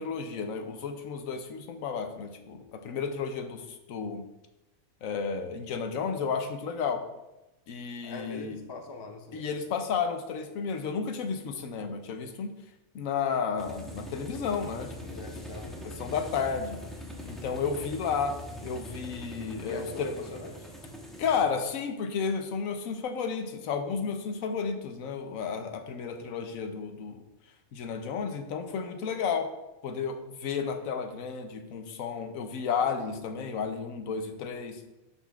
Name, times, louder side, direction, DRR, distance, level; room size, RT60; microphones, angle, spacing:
voice 1, 0.0-4.2 5.0-7.0 7.7-8.5 9.3-12.5 12.9-15.2 15.8-16.8 17.2-18.4 18.6-20.1 21.2-27.2 27.7-29.5 29.8-34.8, left 6 dB, 75° left, 6 dB, 1.1 m, -32 dB
voice 2, 8.0-9.5 15.1-16.5 19.6-20.7, left 2 dB, 40° left, 3 dB, 0.3 m, -42 dB
sound 1, 13.6-21.4, equal, ahead, 0.9 m, -42 dB
11.5 x 4.1 x 2.4 m, 0.97 s
omnidirectional pair, 1.5 m